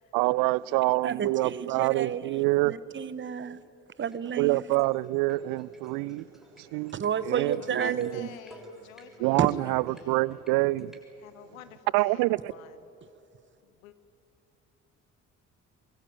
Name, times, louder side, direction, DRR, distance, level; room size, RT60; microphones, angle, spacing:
voice 1, 0.1-2.7 4.4-8.3 9.2-11.0 11.9-12.5, right 21 dB, 55° right, 0.6 m, -27 dB
voice 2, 1.0-2.2 2.6-3.6 4.0-4.6 7.0-8.3 9.4-9.5, right 7 dB, 30° right, 1.0 m, -30 dB
sound 1, 4.0-11.0, equal, ahead, 7.3 m, -55 dB
voice 3, 7.6-10.2 11.2-12.8 13.6-13.9, left 12 dB, 75° left, 1.4 m, -48 dB
23.0 x 22.5 x 8.9 m
figure-of-eight pair, 50°, 41 cm